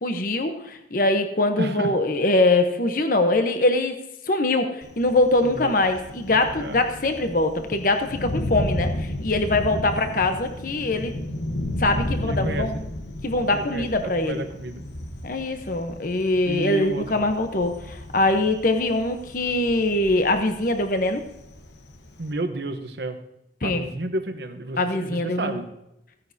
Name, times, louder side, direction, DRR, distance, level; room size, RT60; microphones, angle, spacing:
voice 1, 0.0-3.9 4.3-11.1 11.8-12.7 13.2-14.5 15.2-21.2 23.6-23.8 24.8-25.6, left 2 dB, 50° left, 6 dB, 0.9 m, -23 dB
voice 2, 1.6-1.9 5.4-5.7 6.6-6.8 12.2-12.7 13.5-13.9 14.2-14.8 16.4-17.2 22.2-23.2 23.6-25.7, right 1 dB, 65° right, 7 dB, 1.0 m, -31 dB
Thunder, 4.8-22.3, left 1 dB, 75° left, 1.1 m, -33 dB
16.0 x 9.5 x 2.8 m, 0.86 s
head